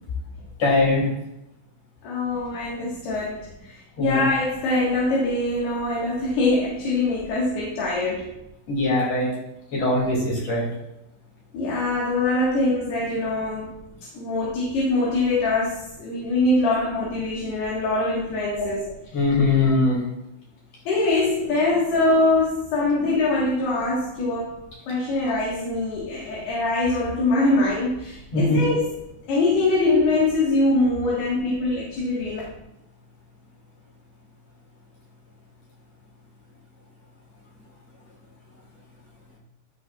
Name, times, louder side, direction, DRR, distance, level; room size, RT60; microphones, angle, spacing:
voice 1, 0.6-1.1 4.0-4.2 8.7-9.3 9.7-10.7 18.6-18.7 19.1-20.0 28.3-28.6 29.8-29.9, left 2 dB, 40° left, -3 dB, 2.8 m, -21 dB
voice 2, 2.0-8.3 11.5-13.8 14.1-18.8 20.9-24.5 24.9-29.0 29.3-32.4, left 2 dB, 65° left, -6 dB, 3.2 m, -23 dB
13.0 x 6.2 x 2.4 m, 0.83 s
omnidirectional pair, 5.6 m